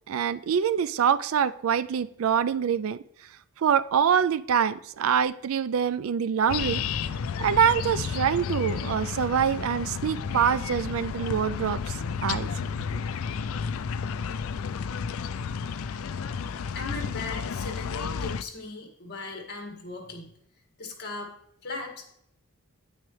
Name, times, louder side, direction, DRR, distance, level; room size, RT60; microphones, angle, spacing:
voice 1, 0.1-3.0 3.6-6.8 7.4-12.5, right 8 dB, 65° right, 0.4 m, -25 dB
sound 1, 6.5-18.4, left 6 dB, 65° left, 0.4 m, -32 dB
voice 2, 16.7-20.3 20.8-21.3 21.6-22.1, left 3 dB, 50° left, 2.0 m, -38 dB
9.6 x 9.0 x 3.2 m
head